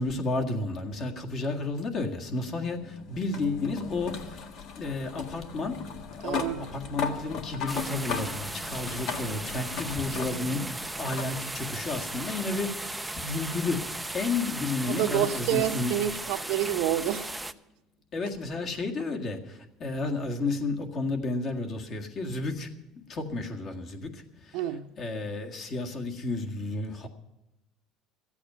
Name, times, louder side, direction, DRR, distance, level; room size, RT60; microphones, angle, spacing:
voice 1, 0.0-4.4 4.8-5.8 6.1-16.0 18.1-22.7 23.1-27.1, left 3 dB, 40° left, 1.8 m, -32 dB
sound 1, 1.8-10.7 11.1-11.3 12.6-12.7 15.6-15.7, left 6 dB, 60° left, 1.6 m, -37 dB
voice 2, 6.2-6.6 14.9-17.3 24.5-24.8, right 12 dB, 80° right, 0.9 m, -28 dB
sound 2, 7.7-17.5, right 2 dB, 5° right, 0.5 m, -36 dB
14.5 x 8.4 x 9.3 m
cardioid pair, 125°, 0 cm